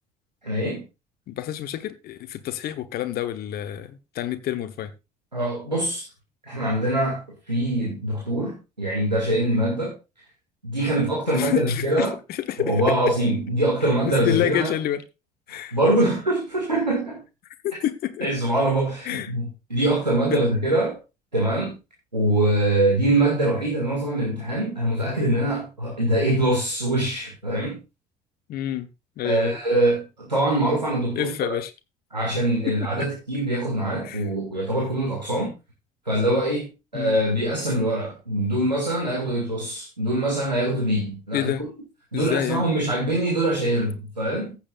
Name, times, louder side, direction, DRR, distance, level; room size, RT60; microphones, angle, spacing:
voice 1, 0.4-0.8 5.3-6.1 6.4-10.0 10.6-12.2 12.6-14.7 15.5-17.2 18.2-21.0 21.3-21.8 22.1-27.8 29.2-31.3 32.1-35.5 36.1-41.7 42.1-44.6, right 1 dB, 90° right, 2.0 m, -23 dB
voice 2, 1.3-4.9 11.3-13.1 14.0-15.0 15.5-15.8 17.6-18.3 19.0-19.3 20.3-20.4 28.5-28.9 29.2-29.6 31.2-31.7 33.0-33.1 34.0-34.3 36.9-37.2 41.3-41.6 42.1-42.7, left 12 dB, 45° left, 1.0 m, -28 dB
15.0 x 7.2 x 2.4 m
figure-of-eight pair, 55°, 21 cm